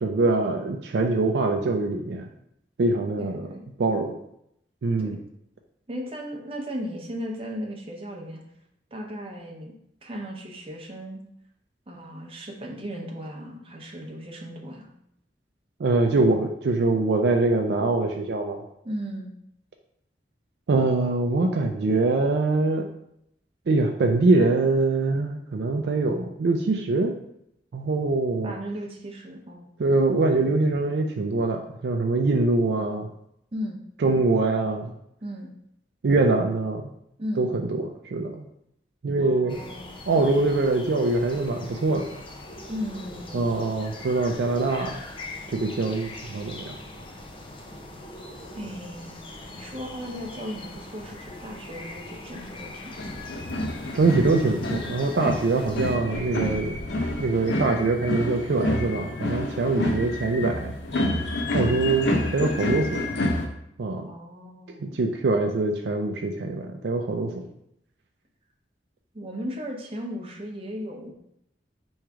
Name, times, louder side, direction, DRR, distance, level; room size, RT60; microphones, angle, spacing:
voice 1, 0.0-2.3 2.8-3.5 3.8-4.2 4.8-5.2 15.8-18.6 20.7-22.9 23.7-27.2 27.7-28.5 29.8-33.1 34.0-34.9 36.0-36.8 37.4-38.4 39.0-39.6 40.1-42.1 43.3-45.0 45.5-46.7 53.9-56.8 57.2-60.7 61.5-63.1 63.8-64.1 64.8-67.5, right 3 dB, 70° right, 3 dB, 0.4 m, -23 dB
voice 2, 3.2-3.7 5.0-5.2 5.9-8.4 8.9-9.7 10.0-11.2 11.9-14.9 18.8-19.3 28.4-29.7 33.5-33.8 35.2-35.5 37.2-37.4 39.2-39.9 40.2-40.4 42.7-43.5 48.6-53.3 59.8-59.9 64.0-65.0 69.1-71.1, equal, 35° right, 0 dB, 0.7 m, -36 dB
sound 1, 39.5-56.0, left 2 dB, 30° left, 0.5 m, -41 dB
sound 2, 53.0-63.5, left 1 dB, 75° left, 0.6 m, -29 dB
3.5 x 3.2 x 4.6 m, 0.76 s
head